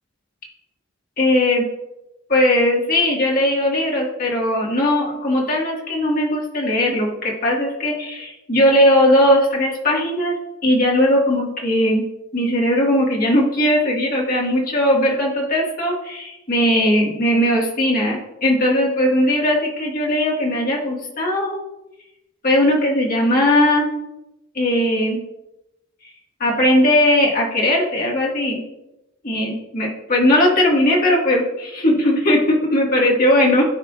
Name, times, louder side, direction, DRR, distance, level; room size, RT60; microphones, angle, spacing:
voice 1, 1.2-1.6 2.3-10.3 10.6-12.0 12.3-21.6 22.4-23.9 24.5-25.2 26.4-28.6 29.2-33.6, left 1 dB, 45° left, -2 dB, 1.8 m, -18 dB
16.5 x 5.6 x 2.5 m, 0.94 s
head